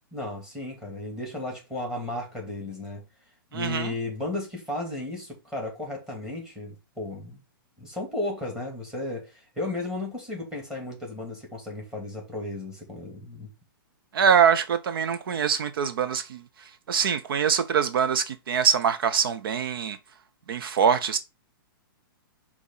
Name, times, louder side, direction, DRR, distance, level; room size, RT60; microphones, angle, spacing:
voice 1, 0.1-3.0 3.5-7.4 7.8-13.5, left 2 dB, 5° right, 2.6 m, -34 dB
voice 2, 3.5-3.9 14.1-16.4 16.9-20.0 20.5-21.2, right 7 dB, 75° right, 0.7 m, -23 dB
6.1 x 3.0 x 5.5 m
hypercardioid pair, 150°, 12 cm